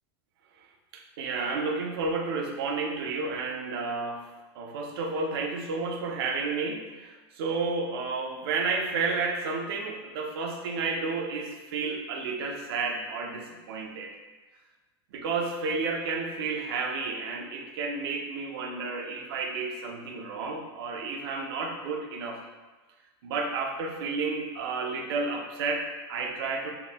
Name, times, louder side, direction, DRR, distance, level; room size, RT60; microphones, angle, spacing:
voice 1, 0.9-4.2 4.6-14.1 15.1-22.4 23.2-26.7, right 4 dB, 75° right, 3 dB, 0.5 m, -31 dB
3.6 x 2.1 x 2.9 m, 1.2 s
supercardioid pair, 165°, 13 cm